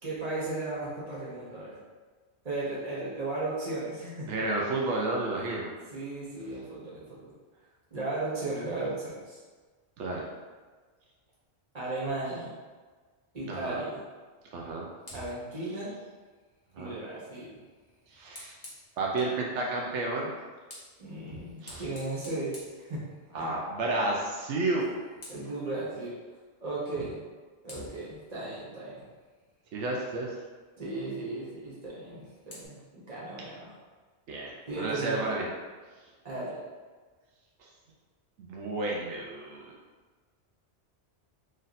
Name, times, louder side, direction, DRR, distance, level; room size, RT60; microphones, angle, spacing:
voice 1, 0.0-1.8 2.4-4.3 5.9-7.3 7.9-9.4 11.7-12.5 13.3-14.0 15.1-15.9 16.7-17.6 21.0-23.0 23.4-23.5 25.3-26.1 26.6-27.2 27.6-29.1 30.8-33.7 34.7-35.3 36.2-36.6, right 2 dB, 35° right, -7 dB, 1.2 m, -36 dB
voice 2, 4.3-5.7 10.0-10.2 13.4-13.8 14.5-14.9 16.7-16.9 18.1-18.5 19.0-20.3 21.6-21.8 23.3-24.9 29.7-30.4 34.3-35.5 37.6-37.7 38.4-39.7, right 2 dB, 85° right, -2 dB, 0.9 m, -31 dB
Fire, 15.0-19.4 20.3-23.6 23.9-24.2 24.5-25.6 27.0-27.1 27.7-30.0 31.9-32.7, left 1 dB, 40° left, 1.1 m, -51 dB
3.1 x 2.6 x 4.0 m, 1.4 s
omnidirectional pair, 1.1 m